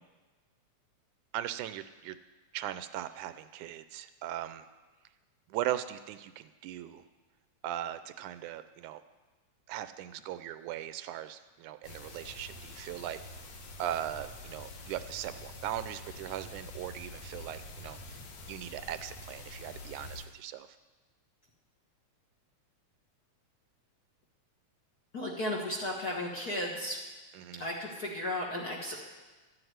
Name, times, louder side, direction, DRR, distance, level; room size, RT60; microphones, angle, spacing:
voice 1, 1.3-2.2 2.5-4.7 5.5-7.0 7.6-9.0 9.7-13.2 13.8-18.2 18.5-20.7 27.3-27.7, right 12 dB, 80° right, 12 dB, 2.0 m, -39 dB
sound 1, 11.8-20.2, left 2 dB, 65° left, 2.5 m, -46 dB
voice 2, 25.1-27.0 27.6-29.0, left 1 dB, 40° left, -2 dB, 1.5 m, -34 dB
12.5 x 7.9 x 9.3 m, 1.2 s
omnidirectional pair, 3.5 m